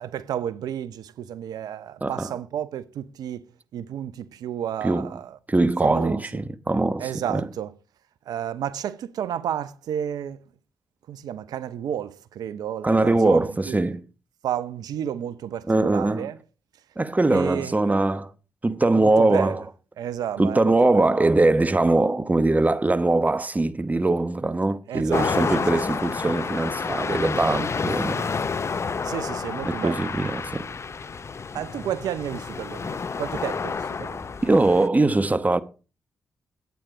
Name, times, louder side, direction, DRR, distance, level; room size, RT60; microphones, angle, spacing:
voice 1, 0.0-3.4 3.7-5.4 5.8-6.4 7.0-7.7 8.3-10.4 11.1-13.8 14.4-16.4 17.3-17.7 19.0-19.6 20.0-21.1 24.9-25.6 29.0-30.0 31.5-34.2, right 10 dB, 70° right, 0.7 m, -31 dB
voice 2, 2.0-2.3 4.8-5.2 5.5-7.5 12.8-14.0 15.7-16.3 17.0-18.3 18.6-19.6 20.4-28.3 29.7-30.7 34.4-35.6, right 2 dB, 25° right, 1.0 m, -22 dB
sound 1, 25.1-34.9, left 5 dB, 40° left, 0.6 m, -29 dB
9.4 x 8.9 x 5.0 m
hypercardioid pair, 40°, 7 cm